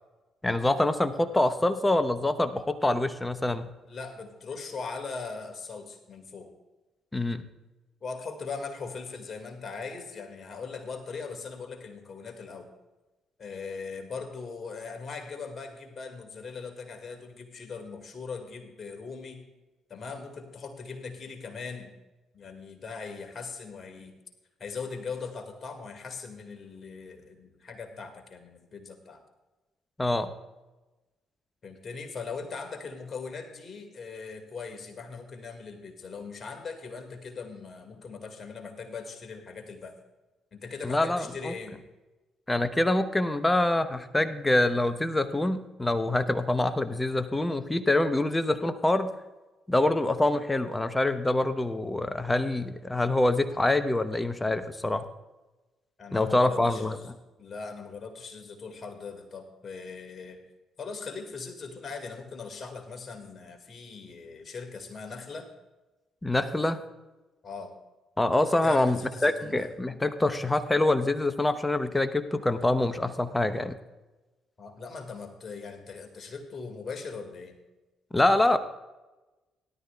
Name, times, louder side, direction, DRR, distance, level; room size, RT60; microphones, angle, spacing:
voice 1, 0.4-3.7 7.1-7.4 30.0-30.3 40.8-41.5 42.5-49.1 49.7-55.1 56.1-57.0 66.2-66.8 68.2-73.8 78.1-78.6, left 2 dB, 15° left, 11 dB, 0.9 m, -25 dB
voice 2, 3.9-6.5 8.0-12.7 13.4-19.4 19.9-21.9 22.3-24.1 24.6-29.2 31.6-40.0 40.5-41.8 56.0-57.1 57.4-60.4 60.8-65.5 67.4-67.7 68.6-69.7 74.6-77.6, left 4 dB, 45° left, 5 dB, 2.0 m, -40 dB
17.5 x 11.5 x 2.3 m, 1.1 s
figure-of-eight pair, 45°, 0 cm